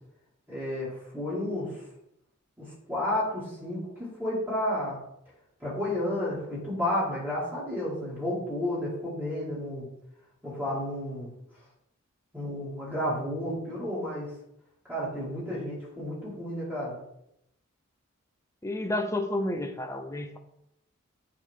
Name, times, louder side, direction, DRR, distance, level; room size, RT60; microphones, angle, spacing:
voice 1, 0.5-1.8 2.6-5.0 5.6-9.9 10.4-11.3 12.3-14.3 14.9-17.0, left 1 dB, 10° right, -8 dB, 2.5 m, -31 dB
voice 2, 18.6-20.4, left 1 dB, 15° left, 5 dB, 0.6 m, -30 dB
9.1 x 4.0 x 3.8 m, 0.80 s
head